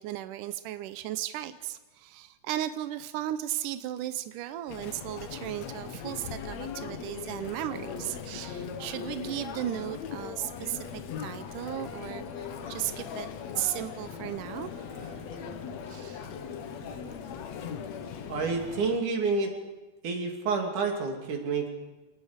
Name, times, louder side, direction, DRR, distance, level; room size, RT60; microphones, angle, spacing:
voice 1, 0.0-10.9 11.2-13.3 13.6-15.3 15.9-16.3 16.8-17.1, right 13 dB, 80° right, 11 dB, 1.9 m, -36 dB
Chatter, 4.7-19.0, left 7 dB, 70° left, 1.7 m, -39 dB
voice 2, 18.3-19.5 20.0-21.7, right 4 dB, 55° right, 3 dB, 3.9 m, -29 dB
28.5 x 19.5 x 5.1 m, 1.2 s
omnidirectional pair, 4.6 m